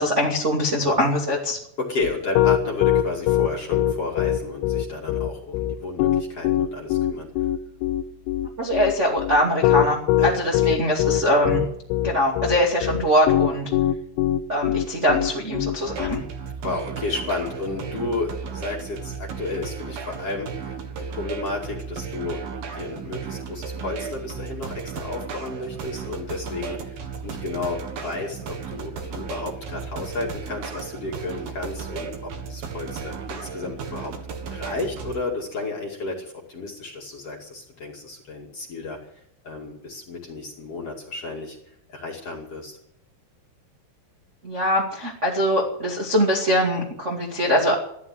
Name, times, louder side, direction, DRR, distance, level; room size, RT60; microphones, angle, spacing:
voice 1, 0.0-1.6 8.6-11.6 12.0-13.7 14.5-16.2 44.4-47.7, equal, 30° right, -2 dB, 1.2 m, -22 dB
voice 2, 1.8-7.3 10.2-10.5 16.6-20.8 21.2-34.1 34.5-39.0 39.4-41.6 41.9-42.8, left 3 dB, 40° left, -1 dB, 2.5 m, -32 dB
Piano, 2.0-16.2, left 12 dB, 80° left, 3.0 m, -21 dB
sound 1, 15.8-35.2, right 6 dB, 60° right, 2.9 m, -34 dB
14.5 x 12.0 x 7.8 m, 0.75 s
omnidirectional pair, 5.5 m